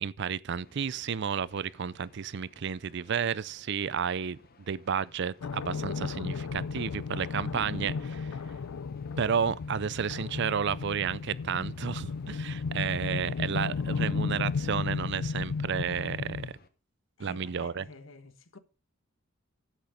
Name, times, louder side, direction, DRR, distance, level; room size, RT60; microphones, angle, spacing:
voice 1, 0.0-4.4 4.7-8.3 9.2-16.5 17.2-17.9, right 7 dB, 55° right, 0.5 m, -32 dB
sound 1, 0.6-16.7, left 2 dB, 45° left, 1.2 m, -59 dB
sound 2, 5.4-16.5, left 5 dB, 85° left, 0.4 m, -34 dB
voice 2, 17.2-18.6, left 2 dB, 65° left, 1.3 m, -49 dB
10.5 x 8.1 x 5.0 m
head